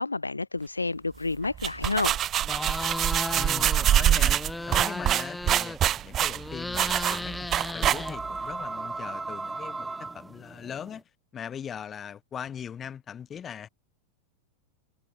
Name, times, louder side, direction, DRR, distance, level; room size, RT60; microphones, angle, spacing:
voice 1, 0.0-2.2, left 3 dB, 80° left, 2.0 m, -29 dB
sound 1, 1.4-8.4, right 11 dB, 30° right, 1.9 m, -25 dB
sound 2, 2.4-3.9 4.2-6.0 6.3-8.6, left 2 dB, 5° left, 0.8 m, -35 dB
sound 3, 2.6-11.0, right 3 dB, 10° right, 4.9 m, -38 dB
voice 2, 3.4-4.4 4.7-5.8 6.0-7.5 7.7-11.0 11.3-13.7, left 8 dB, 25° left, 4.1 m, -40 dB
figure-of-eight pair, 90°, 0 cm